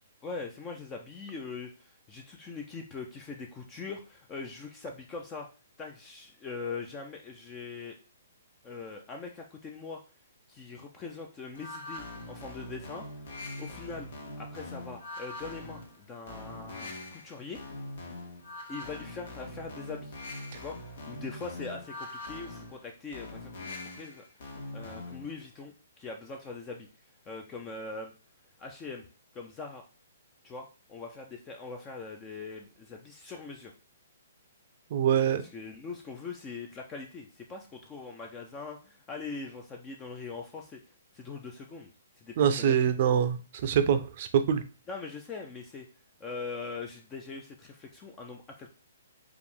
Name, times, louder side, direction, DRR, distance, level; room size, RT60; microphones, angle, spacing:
voice 1, 0.2-5.5 5.8-8.0 8.6-10.0 10.5-13.1 13.6-14.1 14.4-17.6 18.7-20.2 20.6-24.2 24.7-26.9 27.3-28.1 28.6-29.1 29.3-29.8 30.4-33.7 35.5-40.8 41.1-42.9 44.9-45.9 46.2-48.7, left 4 dB, 15° left, 2 dB, 0.5 m, -42 dB
sound 1, 11.5-25.3, left 2 dB, 55° left, 1.5 m, -42 dB
voice 2, 34.9-35.4 42.4-44.6, right 8 dB, 40° right, 10 dB, 0.5 m, -25 dB
4.8 x 2.5 x 3.5 m, 0.34 s
hypercardioid pair, 160°, 0 cm